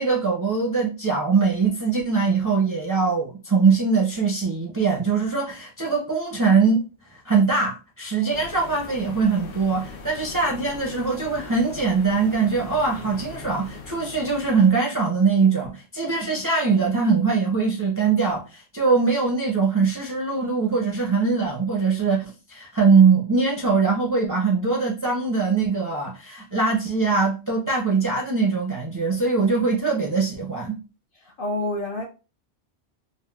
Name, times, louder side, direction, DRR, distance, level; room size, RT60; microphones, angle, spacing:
voice 1, 0.0-6.8 7.1-30.8, right 4 dB, 30° right, 0.4 m, -22 dB
sound 1, 8.3-14.7, left 4 dB, 85° left, 0.9 m, -40 dB
voice 2, 31.2-32.0, left 1 dB, 60° left, 0.6 m, -28 dB
3.5 x 2.1 x 2.2 m
omnidirectional pair, 1.2 m